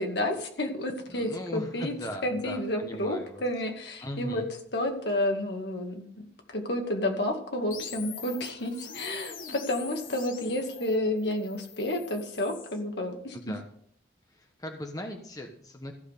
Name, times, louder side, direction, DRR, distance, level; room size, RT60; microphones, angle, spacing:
voice 1, 0.0-1.9 2.2-4.4 4.7-13.4, left 1 dB, 65° left, 3 dB, 2.2 m, -30 dB
voice 2, 1.1-3.4 4.0-4.5 13.3-13.7 14.3-15.9, left 1 dB, 20° left, 3 dB, 1.2 m, -39 dB
sound 1, 7.7-12.8, left 6 dB, 45° left, 1.2 m, -44 dB
15.0 x 6.2 x 6.6 m, 0.64 s
head